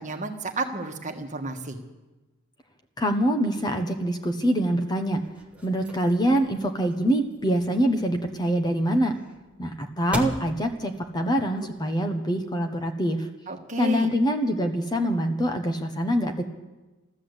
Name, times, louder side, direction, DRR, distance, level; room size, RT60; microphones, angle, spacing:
voice 1, 0.0-1.8 13.5-14.1, right 2 dB, 35° right, 3 dB, 1.4 m, -31 dB
voice 2, 3.0-5.2 5.6-9.1 9.6-13.3 13.8-16.4, equal, 20° left, 5 dB, 1.0 m, -25 dB
sound 1, 5.1-12.2, right 1 dB, 5° right, 1.3 m, -40 dB
13.5 x 13.0 x 8.0 m, 1.1 s
head